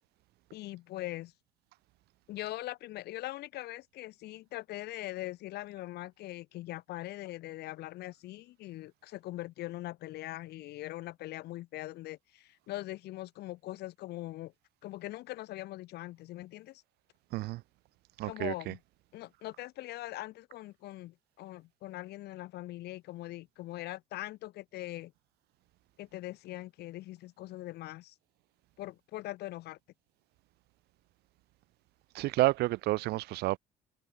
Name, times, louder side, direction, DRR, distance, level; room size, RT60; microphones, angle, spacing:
voice 1, 0.5-1.3 2.3-14.5 14.8-16.8 18.2-18.8 19.1-25.1 26.0-28.1 28.8-29.8, left 16 dB, 70° left, 3.9 m, -41 dB
voice 2, 18.2-18.7 32.1-33.6, right 19 dB, 70° right, 0.7 m, -30 dB
supercardioid pair, 90°, 17 cm